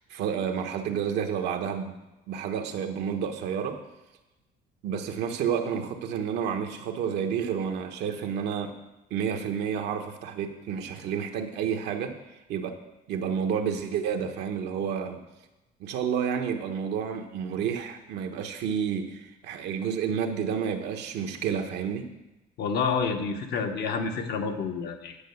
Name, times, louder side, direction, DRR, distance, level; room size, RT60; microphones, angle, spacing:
voice 1, 0.0-2.0 2.3-3.8 4.8-8.8 9.1-12.1 12.5-12.8 13.1-15.2 15.8-22.1, right 7 dB, 80° right, 4 dB, 1.2 m, -30 dB
voice 2, 22.6-25.2, left 5 dB, 70° left, 4 dB, 1.3 m, -29 dB
10.0 x 5.6 x 7.0 m, 1.0 s
cardioid pair, 110°, 17 cm